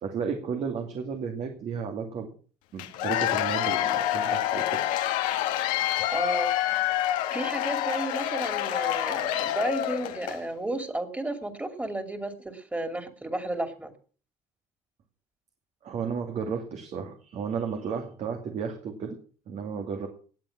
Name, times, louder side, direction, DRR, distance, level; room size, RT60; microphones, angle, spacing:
voice 1, 0.0-2.3 2.7-4.8 15.8-20.1, right 6 dB, 60° right, 4 dB, 2.3 m, -33 dB
Cheering / Applause / Crowd, 2.8-10.4, left 12 dB, 85° left, 1.4 m, -27 dB
voice 2, 6.1-6.5 7.3-13.9, right 1 dB, 10° right, 7 dB, 2.7 m, -32 dB
18.5 x 7.7 x 6.0 m, 0.42 s
supercardioid pair, 85°, 13 cm